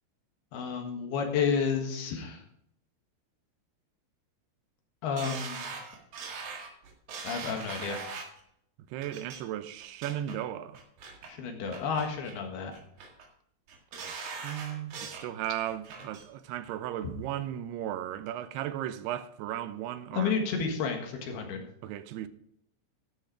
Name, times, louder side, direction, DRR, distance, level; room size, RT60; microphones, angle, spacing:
voice 1, 0.5-2.4 5.0-5.7 7.2-8.0 11.3-12.7 17.0-17.1 20.1-21.7, left 6 dB, 75° left, 3.5 m, -31 dB
sound 1, 5.2-8.4 9.0-9.4 9.8-10.4 10.7-11.3 11.7-12.4 12.7-13.3 13.7-15.3 15.7-16.2 16.6-16.7, right 5 dB, 65° right, 3.4 m, -41 dB
voice 2, 8.9-10.8 14.0-20.3 21.8-22.3, right 12 dB, 85° right, 2.7 m, -36 dB
13.0 x 6.6 x 4.9 m
omnidirectional pair, 4.7 m